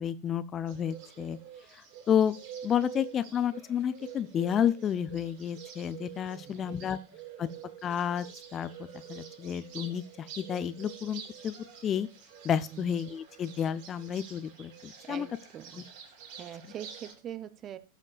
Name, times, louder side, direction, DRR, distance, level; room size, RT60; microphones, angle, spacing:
voice 1, 0.0-1.4 1.7-2.4 2.6-7.0 7.4-7.5 7.8-8.3 8.5-11.5 11.8-12.1 12.4-15.3, left 9 dB, 25° left, 0.5 m, -31 dB
Bird, 0.7-17.1, right 9 dB, 50° right, 4.0 m, -48 dB
voice 2, 6.4-6.9 12.7-12.9 15.0-15.9 16.4-17.8, right 10 dB, 30° right, 0.7 m, -43 dB
17.5 x 7.4 x 2.4 m
figure-of-eight pair, 90°, 0 cm